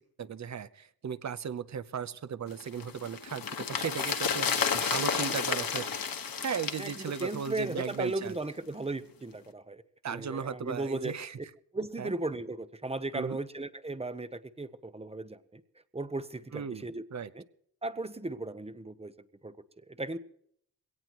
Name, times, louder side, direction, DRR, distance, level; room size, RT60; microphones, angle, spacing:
voice 1, 0.0-6.0 6.4-8.4 10.0-11.4 12.0-12.1 13.1-13.4 16.5-17.3, right 7 dB, 45° right, 15 dB, 0.8 m, -36 dB
sound 1, 2.6-8.0 8.3-8.4, left 6 dB, 60° left, 1.5 m, -32 dB
voice 2, 6.8-11.1 11.7-15.6 15.9-17.0 17.3-17.4 17.8-19.1 19.4-19.6 19.9-20.2, right 2 dB, 15° right, 12 dB, 0.8 m, -36 dB
22.0 x 17.5 x 3.0 m, 0.68 s
wide cardioid pair, 105°, 39 cm